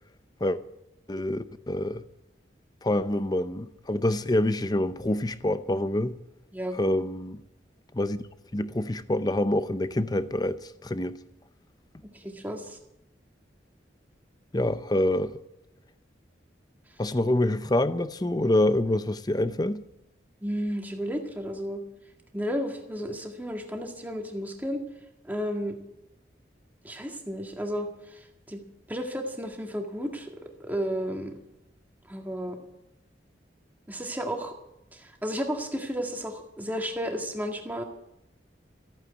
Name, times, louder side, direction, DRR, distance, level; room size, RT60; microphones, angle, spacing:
voice 1, 1.1-2.0 2.8-6.2 6.7-7.4 7.9-8.2 8.5-11.2 14.5-15.4 17.0-19.8, left 1 dB, 20° left, 0.6 m, -26 dB
voice 2, 6.5-7.0 12.1-12.8 20.4-21.8 22.3-24.8 25.2-25.8 26.8-28.6 28.9-30.3 30.6-31.3 32.1-32.6 33.9-34.5 34.9-37.8, equal, 10° right, 1.9 m, -33 dB
14.5 x 9.0 x 8.2 m
head